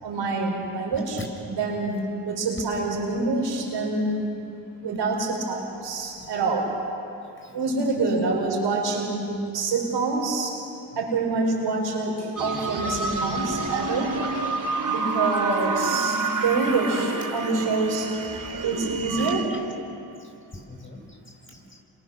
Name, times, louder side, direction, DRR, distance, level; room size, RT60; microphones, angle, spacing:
voice 1, 0.0-1.2 1.5-4.3 4.8-6.7 7.5-10.6 10.9-14.1 14.9-18.2 18.6-19.4, right 3 dB, 80° right, 0 dB, 5.4 m, -26 dB
voice 2, 0.9-1.3 6.2-6.3 7.4-7.5 19.2-19.6 20.2-21.8, left 1 dB, 30° left, 2 dB, 6.5 m, -42 dB
sound 1, 12.4-19.4, right 3 dB, 50° right, 4.0 m, -28 dB
29.5 x 26.5 x 6.7 m, 2.6 s
supercardioid pair, 40°, 41 cm